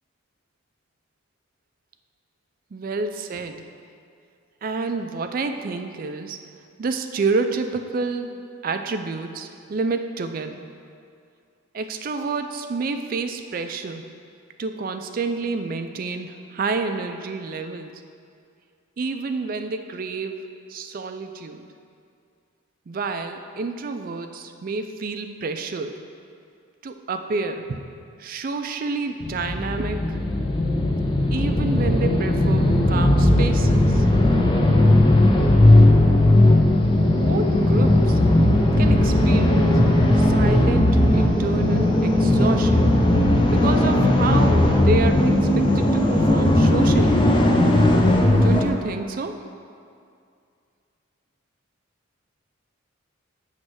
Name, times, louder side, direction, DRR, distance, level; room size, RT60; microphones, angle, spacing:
voice 1, 2.7-3.7 4.6-6.4 6.8-10.7 11.7-14.0 14.6-18.0 19.0-21.7 22.9-26.0 26.8-27.8 28.2-30.3 31.3-34.1 37.2-38.2 38.8-39.8 40.2-42.9 43.5-47.2 48.4-49.4, right 4 dB, 40° right, 7 dB, 0.3 m, -29 dB
sound 1, 29.2-48.7, left 1 dB, 25° left, 0.5 m, -17 dB
7.8 x 3.2 x 6.2 m, 2.4 s
head